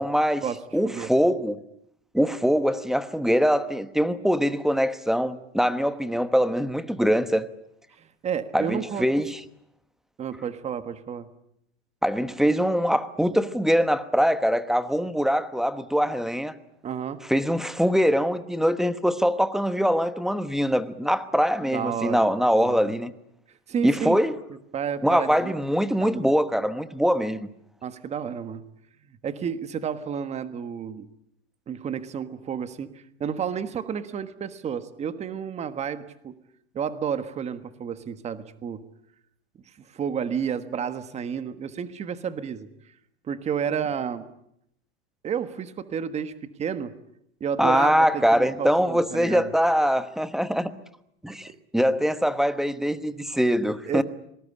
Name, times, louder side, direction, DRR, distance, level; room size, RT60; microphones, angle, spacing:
voice 1, 0.0-0.4 0.7-1.6 2.1-7.5 8.5-9.4 12.0-16.5 17.3-23.1 23.8-24.3 25.0-27.5 47.6-50.7 51.2-54.0, equal, ahead, 1.1 m, -23 dB
voice 2, 8.0-9.0 10.2-11.3 16.8-17.2 21.7-22.9 23.7-24.2 24.7-25.5 26.0-26.3 27.8-28.6 29.2-31.1 31.7-36.4 36.7-38.8 39.9-42.7 43.3-44.3 45.2-46.9 47.4-49.5 51.5-51.6 53.9-54.0, right 7 dB, 20° right, 1.5 m, -31 dB
25.5 x 20.0 x 9.9 m
supercardioid pair, 145°, 32 cm